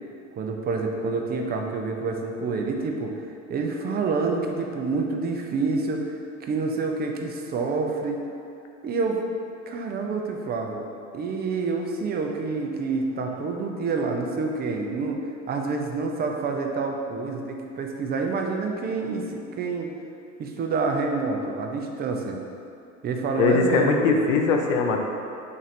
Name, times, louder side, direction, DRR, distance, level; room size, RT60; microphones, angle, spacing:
voice 1, 0.4-3.2 3.5-8.2 8.8-9.2 9.7-10.9 11.1-15.2 15.5-19.9 20.4-22.4 23.0-24.1, right 4 dB, 25° right, 2 dB, 0.4 m, -27 dB
voice 2, 23.4-25.0, left 4 dB, 85° left, 2 dB, 0.5 m, -21 dB
3.0 x 2.6 x 4.1 m, 2.6 s
hypercardioid pair, 85°, 38 cm